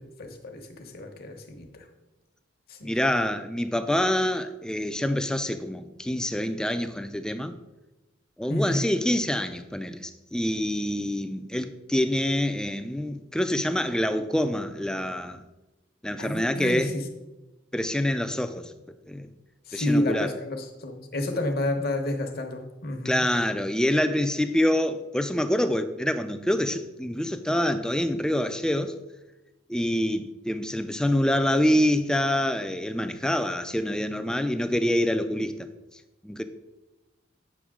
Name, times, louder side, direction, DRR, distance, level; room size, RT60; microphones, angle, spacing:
voice 1, 0.0-1.9 2.7-2.9 8.5-8.9 16.2-17.0 19.7-23.3, left 1 dB, 50° left, 1.0 m, -30 dB
voice 2, 2.8-7.5 8.4-15.4 16.0-16.9 17.7-18.7 19.1-19.3 19.7-20.3 23.0-28.9 29.7-35.7 36.2-36.4, left 1 dB, 5° left, 0.4 m, -26 dB
8.5 x 5.8 x 3.6 m
head